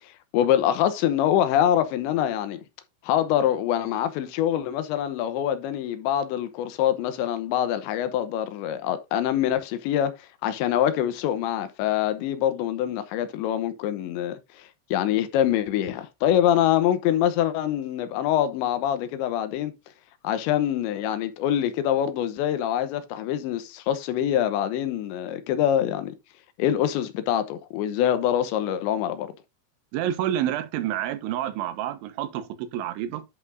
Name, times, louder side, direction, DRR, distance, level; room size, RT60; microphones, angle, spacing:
voice 1, 0.3-2.6 3.0-10.1 10.4-19.7 20.2-26.2 26.6-29.3, left 11 dB, 75° left, 3.0 m, -25 dB
voice 2, 29.9-33.2, right 11 dB, 80° right, 3.4 m, -28 dB
11.0 x 5.9 x 2.6 m
omnidirectional pair, 5.5 m